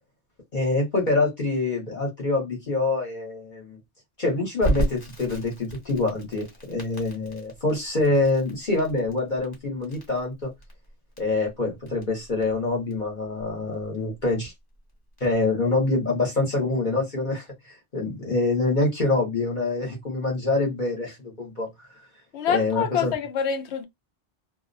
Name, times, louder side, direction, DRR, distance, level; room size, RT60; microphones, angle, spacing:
voice 1, 0.5-3.8 4.2-10.5 11.2-14.5 15.2-21.9 22.5-23.1, left 2 dB, 45° left, 0.9 m, -25 dB
Crackle, 4.6-15.3, right 1 dB, 20° left, 0.9 m, -34 dB
voice 2, 22.3-23.9, left 7 dB, 70° left, 0.9 m, -26 dB
2.4 x 2.0 x 2.5 m
omnidirectional pair, 1.2 m